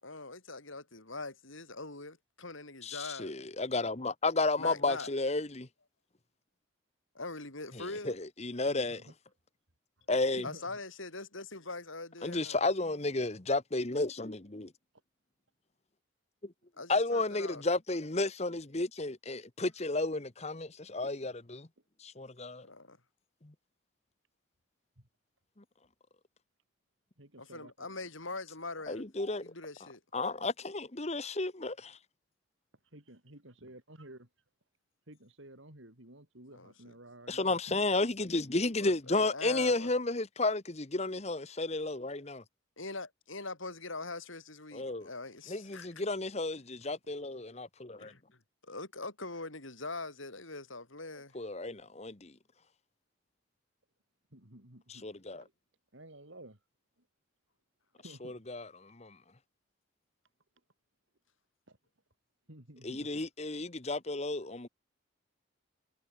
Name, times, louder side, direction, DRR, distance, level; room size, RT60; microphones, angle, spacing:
voice 1, 0.0-3.3 4.6-5.1 7.1-8.1 10.4-12.6 16.8-17.6 22.6-23.0 27.4-29.0 29.4-30.0 36.5-36.9 38.8-39.9 42.8-45.9 48.0-48.2 48.6-51.4, left 3 dB, 75° left, 6.1 m, -42 dB
voice 2, 2.8-5.7 7.7-9.0 10.1-10.4 12.2-14.7 16.4-16.5 16.9-21.7 22.0-22.7 23.4-23.5 28.9-29.4 30.1-32.0 37.3-42.4 44.7-45.1 45.5-48.1 51.3-52.3 54.9-55.4 58.2-59.2 62.8-64.7, left 2 dB, 30° left, 1.2 m, -32 dB
voice 3, 8.7-9.1 10.0-10.1 10.4-10.8 25.0-25.1 27.2-27.9 32.9-34.3 35.1-37.8 54.3-55.1 55.4-55.5 55.9-56.6 57.9-58.4 61.7-61.8 62.5-63.2, right 1 dB, 70° right, 5.0 m, -53 dB
head